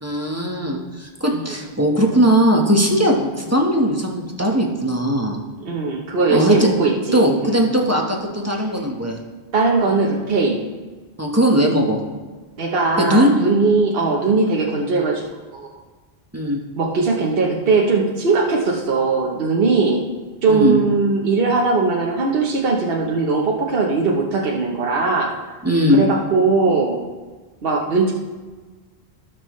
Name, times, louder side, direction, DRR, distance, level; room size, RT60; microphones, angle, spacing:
voice 1, 0.0-5.4 6.3-6.7 7.1-9.2 11.2-12.0 13.0-13.3 16.3-16.6 20.5-20.8 25.6-26.0, equal, 15° right, 0 dB, 1.2 m, -18 dB
voice 2, 5.6-7.6 9.5-10.6 12.6-15.2 15.5-15.7 16.8-20.0 20.4-25.3 25.9-27.0 27.6-28.1, right 4 dB, 65° right, -1 dB, 1.2 m, -19 dB
17.5 x 6.1 x 3.2 m, 1.3 s
omnidirectional pair, 1.0 m